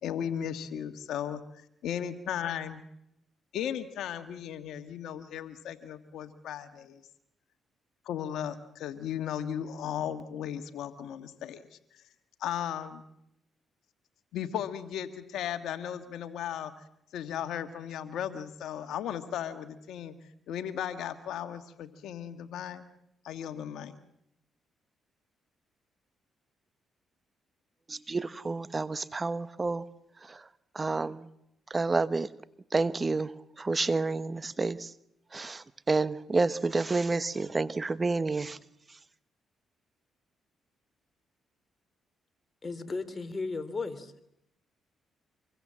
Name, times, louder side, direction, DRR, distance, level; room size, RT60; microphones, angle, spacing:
voice 1, 0.0-2.8 3.5-7.0 8.0-11.6 12.4-13.0 14.3-16.8 17.1-20.1 20.5-22.8 23.2-24.0, left 9 dB, 80° left, 1.6 m, -36 dB
voice 2, 27.9-29.9 30.2-30.5 30.7-31.3 31.7-32.3 32.7-34.9 35.3-38.6 38.9-39.0, right 3 dB, 30° right, 1.1 m, -29 dB
voice 3, 42.6-44.1, left 3 dB, 35° left, 3.1 m, -35 dB
26.0 x 22.5 x 7.5 m
supercardioid pair, 65°, 0 cm